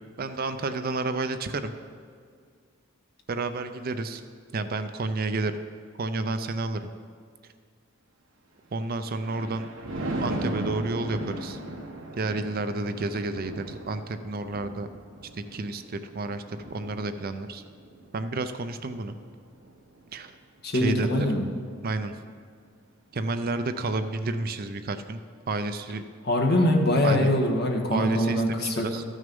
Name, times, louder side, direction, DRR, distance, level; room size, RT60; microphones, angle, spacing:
voice 1, 0.2-1.7 3.3-4.2 4.5-5.5 6.0-6.9 8.7-9.7 10.2-11.6 12.2-14.9 15.3-17.6 18.1-19.2 20.1-20.3 20.7-21.3 21.8-22.2 23.1-25.2 25.5-26.0 27.0-27.3 27.9-29.0, right 3 dB, 45° right, 10 dB, 0.5 m, -30 dB
Thunder, 9.1-20.2 20.7-21.0, right 1 dB, 60° right, 1.4 m, -38 dB
voice 2, 20.6-21.5 26.3-28.8, left 1 dB, 50° left, 2 dB, 1.3 m, -23 dB
14.0 x 6.4 x 5.3 m, 2.1 s
head